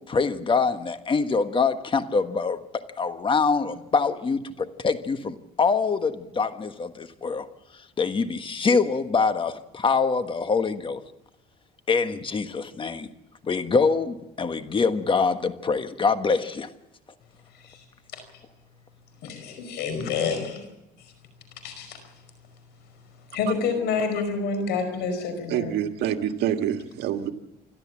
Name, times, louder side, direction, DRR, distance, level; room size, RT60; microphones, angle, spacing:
voice 1, 0.0-2.6 3.0-7.5 8.0-11.0 11.9-13.1 13.4-16.7, left 4 dB, 30° left, 9 dB, 1.4 m, -24 dB
voice 2, 19.2-20.7 21.6-22.0 23.3-25.8, left 5 dB, 85° left, 8 dB, 5.1 m, -28 dB
voice 3, 25.5-27.3, right 10 dB, 80° right, 6 dB, 1.7 m, -26 dB
28.0 x 12.5 x 7.4 m, 0.91 s
cardioid pair, 110°, 17 cm